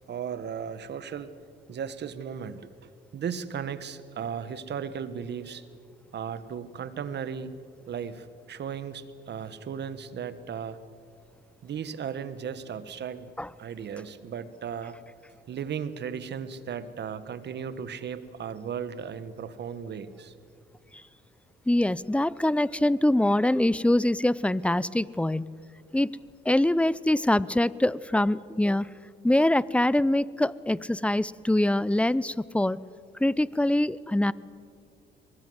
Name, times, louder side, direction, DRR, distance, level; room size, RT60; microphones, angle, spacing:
voice 1, 0.1-1.3 1.7-5.7 6.1-7.5 7.9-10.8 11.6-13.3 13.6-15.0 15.5-20.3, right 7 dB, 60° right, 14 dB, 1.5 m, -36 dB
voice 2, 21.7-25.5 25.9-26.2 26.4-28.9 29.2-32.8 33.2-34.3, left 1 dB, 5° left, 20 dB, 0.6 m, -24 dB
23.5 x 19.5 x 8.0 m, 2.3 s
cardioid pair, 90°, 20 cm